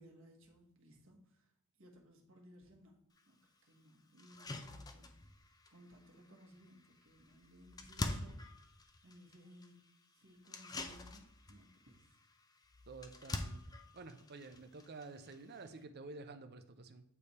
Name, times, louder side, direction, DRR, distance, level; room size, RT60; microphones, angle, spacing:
voice 1, 0.0-1.5 1.8-2.9 3.3-5.1 5.7-8.4 9.0-9.8 10.1-12.1, equal, 65° right, 0 dB, 1.4 m, -61 dB
sound 1, 3.2-3.3 3.7-3.8 4.2-15.8, left 2 dB, 20° left, 0.5 m, -47 dB
voice 2, 12.9-17.0, right 3 dB, 50° right, 9 dB, 0.6 m, -51 dB
8.4 x 3.4 x 4.2 m, 0.77 s
head